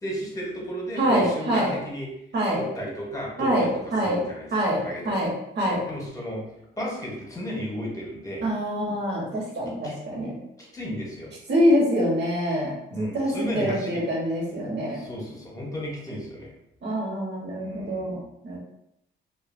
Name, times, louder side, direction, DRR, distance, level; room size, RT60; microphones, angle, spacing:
voice 1, 0.0-2.1 2.5-5.2 5.9-6.4 6.8-8.5 9.8-9.9 10.6-11.3 12.9-14.0 14.9-16.5 17.6-18.2, equal, 15° left, -2 dB, 0.9 m, -34 dB
voice 2, 1.0-1.7 2.3-2.6 3.4-4.2 4.5-5.8 8.4-10.4 11.5-15.0 16.8-18.6, equal, 60° right, -4 dB, 1.2 m, -25 dB
2.6 x 2.4 x 2.6 m, 0.81 s
cardioid pair, 90°, 20 cm